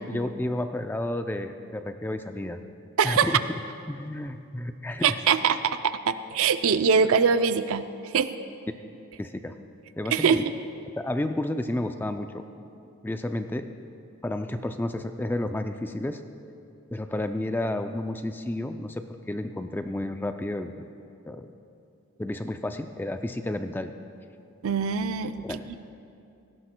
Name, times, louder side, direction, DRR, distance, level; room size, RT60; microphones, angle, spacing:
voice 1, 0.0-2.6 3.0-3.6 3.9-5.2 9.2-9.5 10.0-10.5 11.0-12.4 13.0-13.7 14.2-16.2 16.9-20.8 21.2-21.5 22.2-23.9 25.4-25.8, left 1 dB, 10° left, 7 dB, 0.3 m, -31 dB
voice 2, 3.0-3.3 5.0-8.3 10.1-10.4 24.6-25.8, right 6 dB, 80° right, 11 dB, 0.4 m, -23 dB
18.0 x 15.5 x 2.2 m, 2.6 s
head